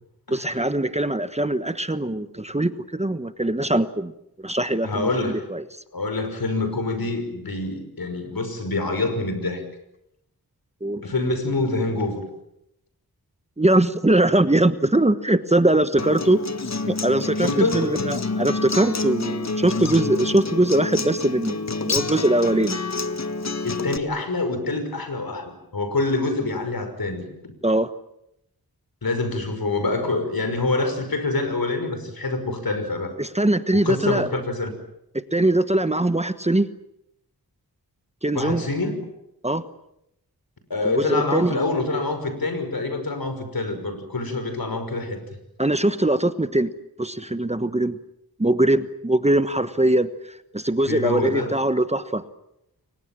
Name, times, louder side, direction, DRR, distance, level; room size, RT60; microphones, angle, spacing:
voice 1, 0.3-4.1 4.4-5.6 10.8-11.0 13.6-16.4 16.9-21.6 21.8-22.8 27.6-27.9 33.2-34.3 35.3-36.7 38.2-38.6 39.4-39.6 41.0-41.6 45.6-46.7 47.0-48.0 48.4-52.2, right 1 dB, 20° right, 11 dB, 1.2 m, -21 dB
voice 2, 4.8-5.4 5.9-9.6 11.0-12.2 17.4-17.9 23.4-27.5 29.0-33.1 33.7-34.7 38.3-39.0 40.7-45.2 50.9-51.6, left 2 dB, 70° left, 8 dB, 5.7 m, -26 dB
Acoustic guitar, 16.0-24.0, left 3 dB, 45° left, 1.6 m, -28 dB
29.5 x 24.0 x 7.5 m, 0.81 s
wide cardioid pair, 100°, 36 cm